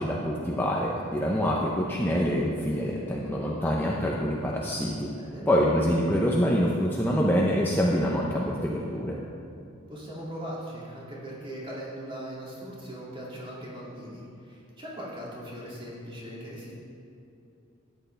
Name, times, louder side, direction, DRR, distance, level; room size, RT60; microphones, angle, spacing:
voice 1, 0.0-5.1 5.5-9.2, equal, 10° left, -3 dB, 0.6 m, -26 dB
voice 2, 5.1-5.4 9.9-16.7, equal, 25° right, -7 dB, 2.4 m, -39 dB
13.0 x 9.3 x 3.4 m, 2.7 s
head